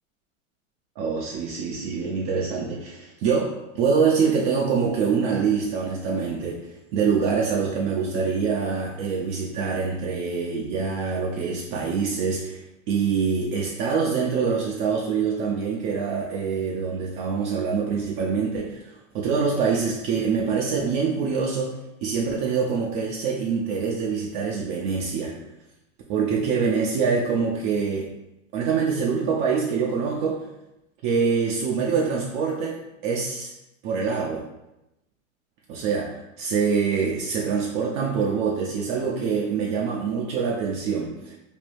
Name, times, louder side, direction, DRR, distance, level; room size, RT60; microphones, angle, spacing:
voice 1, 1.0-12.6 12.9-25.3 26.1-28.1 28.5-30.5 31.0-32.8 33.0-33.5 33.8-34.4 35.7-41.4, right 5 dB, 40° right, -2 dB, 0.4 m, -25 dB
3.5 x 2.1 x 2.5 m, 0.90 s
hypercardioid pair, 95°, 40 cm